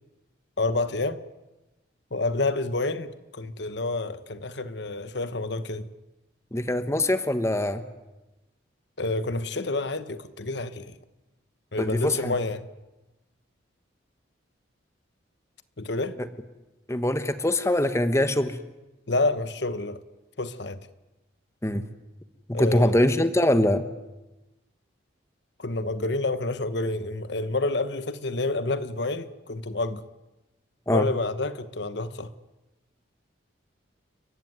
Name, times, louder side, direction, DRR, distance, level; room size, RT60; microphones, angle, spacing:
voice 1, 0.6-1.2 2.1-3.1 3.3-5.9 9.0-10.9 11.7-12.6 15.8-16.2 19.1-20.0 20.4-20.8 22.5-23.0 25.6-30.0 30.9-32.3, left 2 dB, 60° left, 1.2 m, -28 dB
voice 2, 6.5-7.8 11.8-12.3 16.2-16.3 16.9-18.6 21.6-21.8 22.5-23.8 30.9-31.1, left 1 dB, 15° left, 1.2 m, -23 dB
30.0 x 15.5 x 9.6 m
head